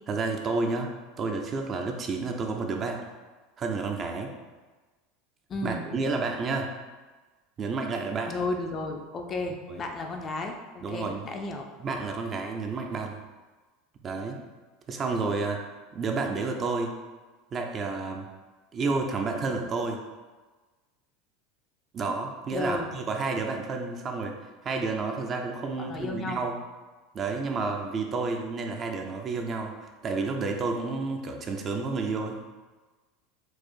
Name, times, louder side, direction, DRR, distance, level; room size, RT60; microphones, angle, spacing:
voice 1, 0.1-3.1 3.6-4.3 5.6-6.7 7.6-8.3 9.7-9.8 10.8-11.2 11.8-13.2 14.0-14.4 14.9-15.6 15.9-16.9 17.5-18.3 18.7-20.0 21.9-24.3 24.6-26.6 27.1-32.4, right 3 dB, 30° right, 3 dB, 0.5 m, -30 dB
voice 2, 5.5-5.8 8.3-11.6 22.5-22.9 25.8-26.4, left 2 dB, 25° left, 3 dB, 0.4 m, -33 dB
4.7 x 2.4 x 4.5 m, 1.3 s
supercardioid pair, 145°, 0 cm